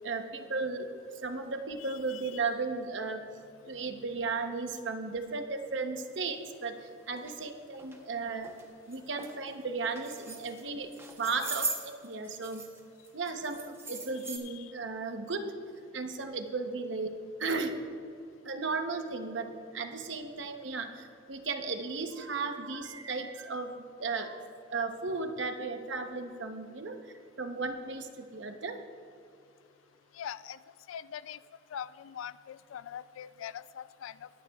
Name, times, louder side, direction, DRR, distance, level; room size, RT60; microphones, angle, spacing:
voice 1, 0.0-0.9 1.2-3.3 3.7-8.5 8.9-10.9 11.2-12.7 13.1-15.5 15.9-17.8 18.4-24.4 24.7-27.0 27.4-28.8, right 4 dB, 65° right, 6 dB, 0.9 m, -35 dB
voice 2, 1.9-2.2 14.5-14.7 30.1-30.6 30.9-31.4 31.7-34.3, left 9 dB, 90° left, 17 dB, 0.3 m, -42 dB
sound 1, 6.5-6.6 7.2-7.3 7.8-8.0 8.4-8.6 8.9-9.3 9.9-10.6 10.9-12.8 13.0-14.4, right 3 dB, 15° right, 0.9 m, -39 dB
21.0 x 9.7 x 2.4 m, 2.4 s
head